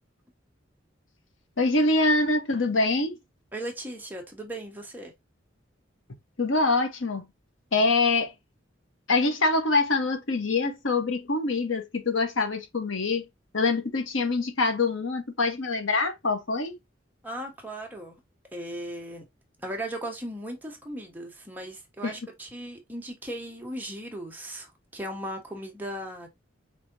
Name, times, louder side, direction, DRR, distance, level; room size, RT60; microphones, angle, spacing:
voice 1, 1.6-3.2 6.4-7.3 7.7-8.3 9.1-13.3 13.5-16.8 22.0-22.2, left 3 dB, 85° left, 1.1 m, -25 dB
voice 2, 3.5-5.1 17.2-18.2 18.5-19.2 19.6-26.3, right 1 dB, 10° right, 1.2 m, -37 dB
4.9 x 3.4 x 2.7 m
head